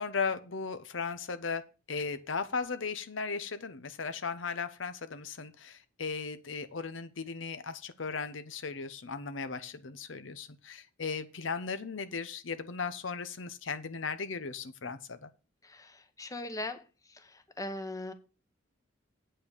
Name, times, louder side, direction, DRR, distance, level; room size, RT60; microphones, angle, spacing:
voice 1, 0.0-1.6 1.9-15.3, left 5 dB, 70° left, 0.8 m, -36 dB
voice 2, 15.6-16.8 17.1-18.1, left 1 dB, 20° left, 1.0 m, -39 dB
8.7 x 5.7 x 6.5 m
head